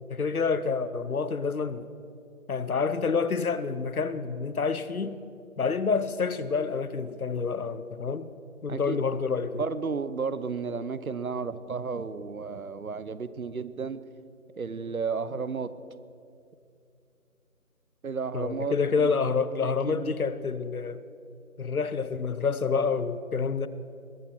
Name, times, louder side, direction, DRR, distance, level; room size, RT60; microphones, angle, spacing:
voice 1, 0.1-1.9 2.5-5.2 5.6-8.3 8.6-9.6 18.3-21.0 21.6-23.7, left 5 dB, 75° left, 0.9 m, -28 dB
voice 2, 9.6-14.0 14.6-15.7 18.0-19.1 19.6-20.1, right 5 dB, 75° right, 0.9 m, -33 dB
21.5 x 9.1 x 6.1 m
figure-of-eight pair, 180°, 43 cm